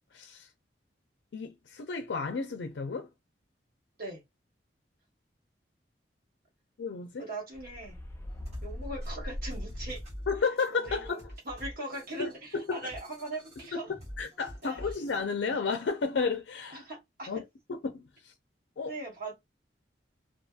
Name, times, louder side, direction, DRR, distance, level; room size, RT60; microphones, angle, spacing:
voice 1, 0.1-0.5 1.3-3.1 6.8-7.2 10.3-11.3 12.2-12.9 13.7-13.8 14.2-16.8 17.3-17.4 17.7-18.3 18.8-18.9, left 4 dB, 80° left, 0.4 m, -32 dB
voice 2, 7.2-8.0 8.6-10.0 10.7-11.2 11.4-13.9 14.6-14.9 16.7-17.3 18.9-19.3, right 2 dB, 55° right, 1.4 m, -40 dB
sound 1, 7.5-10.3, equal, 15° left, 0.4 m, -41 dB
sound 2, 8.3-15.2, equal, 40° right, 1.2 m, -45 dB
2.7 x 2.3 x 2.4 m
head